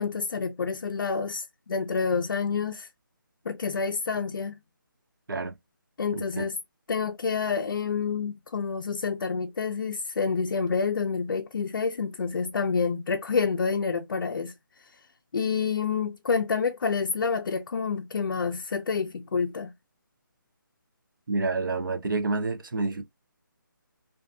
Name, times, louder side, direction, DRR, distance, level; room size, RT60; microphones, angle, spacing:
voice 1, 0.0-2.9 3.5-4.6 6.0-6.6 6.9-15.0 15.3-19.7, left 5 dB, 65° left, 0.4 m, -28 dB
voice 2, 6.1-6.4 21.3-23.0, right 3 dB, 70° right, 0.7 m, -28 dB
2.6 x 2.5 x 2.3 m
hypercardioid pair, 170°, 11 cm